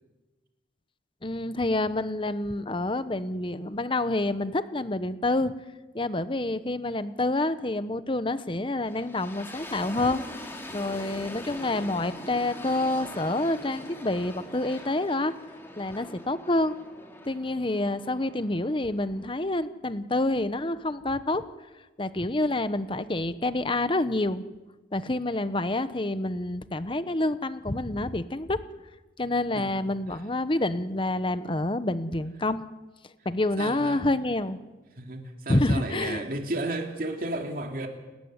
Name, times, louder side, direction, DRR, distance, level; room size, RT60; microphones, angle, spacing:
voice 1, 1.2-5.5 5.9-10.2 10.7-15.3 15.8-16.8 17.3-21.4 22.0-24.4 24.9-28.6 29.2-32.6 33.2-34.6 35.5-36.2, left 2 dB, 30° left, 13 dB, 1.0 m, -28 dB
sound 1, 8.8-19.7, left 1 dB, 15° left, 3.4 m, -43 dB
voice 2, 33.6-34.0 35.0-37.9, right 2 dB, 55° right, 3 dB, 2.8 m, -33 dB
30.0 x 14.0 x 9.7 m, 1.2 s
head